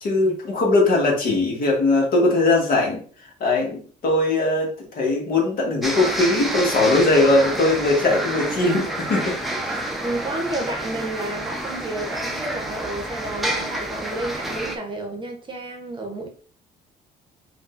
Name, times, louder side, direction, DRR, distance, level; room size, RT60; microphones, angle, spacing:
voice 1, 0.0-3.0 3.4-9.4 9.6-9.8, left 2 dB, 55° left, 1.6 m, -20 dB
sound 1, 5.8-14.8, right 1 dB, ahead, 0.7 m, -28 dB
voice 2, 10.0-16.3, right 2 dB, 30° right, 0.9 m, -31 dB
5.1 x 2.7 x 2.5 m
cardioid pair, 110°, 17 cm